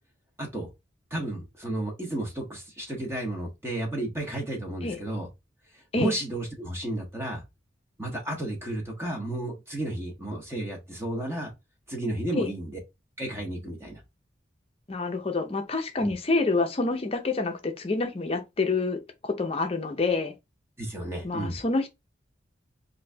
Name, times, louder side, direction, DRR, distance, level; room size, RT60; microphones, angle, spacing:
voice 1, 0.4-0.7 1.1-5.3 5.7-7.4 8.0-11.5 11.9-12.8 13.2-14.0 16.0-16.1 20.8-21.6, right 1 dB, 15° right, 0.7 m, -32 dB
voice 2, 14.9-20.3 21.2-21.9, left 3 dB, 30° left, 0.5 m, -27 dB
2.9 x 2.6 x 3.2 m
head